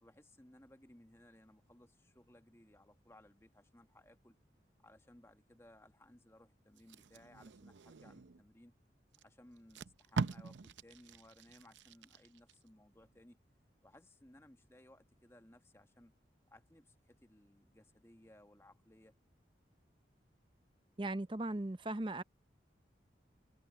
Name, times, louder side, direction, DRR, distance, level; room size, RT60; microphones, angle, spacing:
voice 1, 0.0-4.4 4.8-8.7 9.2-13.4 13.8-16.1 16.5-19.1, left 1 dB, 15° left, 1.5 m, -62 dB
Packing tape duct tape, 6.8-8.4 9.1-9.2 9.6-12.5 13.0-13.2, right 4 dB, 85° right, 0.6 m, -43 dB
voice 2, 21.0-22.2, right 2 dB, 25° right, 0.7 m, -38 dB
head